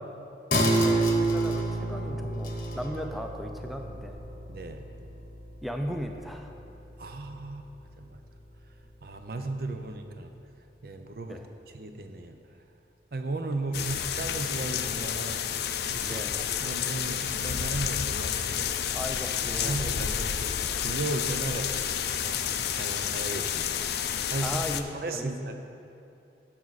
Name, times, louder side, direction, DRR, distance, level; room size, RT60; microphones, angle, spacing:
sound 1, 0.5-7.5 7.9-8.0, right 1 dB, 45° left, 0.9 m, -29 dB
voice 1, 0.7-4.2 5.6-6.5 11.3-11.5 16.0-16.5 18.9-19.8 24.4-24.9 25.1-25.5, equal, ahead, 4 dB, 0.4 m, -36 dB
voice 2, 4.5-4.9 7.0-7.7 8.0-8.2 9.0-10.3 10.8-11.4 11.7-12.4 13.1-15.4 15.9-16.3 16.6-18.9 19.6-24.6 24.9-25.6, right 2 dB, 55° right, 6 dB, 0.6 m, -36 dB
sound 2, 13.7-24.8, left 8 dB, 65° left, 0.4 m, -30 dB
11.0 x 6.0 x 4.1 m, 2.8 s
head